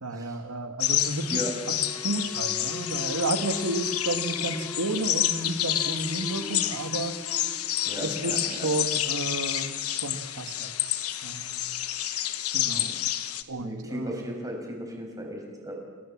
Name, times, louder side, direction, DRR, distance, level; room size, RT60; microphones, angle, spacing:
voice 1, 0.0-1.3 1.7-1.8 2.0-7.1 8.0-10.8 11.2-11.6 12.5-12.9 13.5-14.2, right 2 dB, 85° right, 7 dB, 1.9 m, -32 dB
sound 1, 0.8-13.4, left 12 dB, 75° left, 1.2 m, -29 dB
sound 2, 1.8-9.0, equal, 5° left, 2.6 m, -42 dB
voice 2, 7.8-8.7 12.7-12.9 13.6-15.7, equal, 15° right, 1 dB, 6.4 m, -36 dB
29.5 x 19.0 x 7.4 m, 1.5 s
head